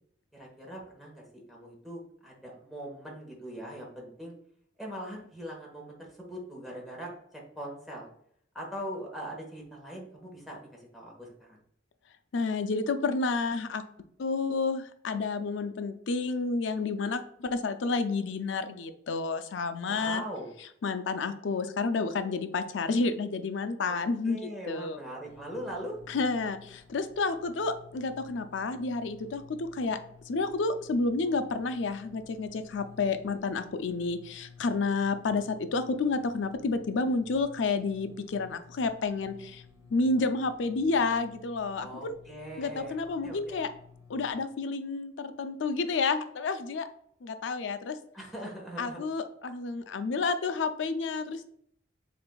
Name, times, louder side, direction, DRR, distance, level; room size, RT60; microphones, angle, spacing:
voice 1, 0.3-4.4 4.8-8.1 8.5-11.6 19.9-20.5 23.8-24.0 24.2-26.0 41.8-43.6 48.1-49.0, equal, ahead, -3 dB, 1.2 m, -41 dB
voice 2, 12.3-13.8 14.2-20.2 20.8-25.0 26.1-30.0 30.3-39.6 39.9-42.2 42.6-43.7 44.1-46.9 47.2-48.0 48.8-51.5, left 3 dB, 75° left, 9 dB, 0.4 m, -30 dB
sound 1, 25.2-44.3, left 5 dB, 20° right, 1.0 m, -54 dB
7.5 x 2.6 x 2.3 m, 0.68 s
head